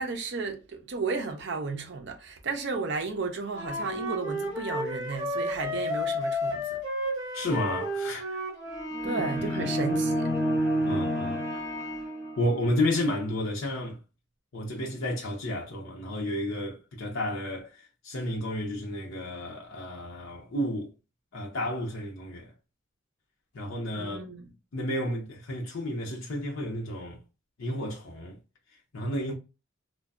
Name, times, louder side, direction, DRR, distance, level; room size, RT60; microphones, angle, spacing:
voice 1, 0.0-6.8 9.0-10.3 24.0-24.5, right 4 dB, 55° right, 0.5 m, -33 dB
Wind instrument woodwind instrument, 3.5-8.9, left 1 dB, 15° right, 1.4 m, -32 dB
voice 2, 7.3-8.4 9.0-9.2 9.6-9.7 10.8-11.5 12.4-14.0 14.5-20.9 21.3-22.5 23.5-24.2 24.7-27.2 27.6-28.4 28.9-29.3, left 1 dB, 80° left, 0.6 m, -31 dB
sound 1, 8.7-12.7, equal, 20° left, 0.6 m, -29 dB
2.5 x 2.1 x 2.3 m
head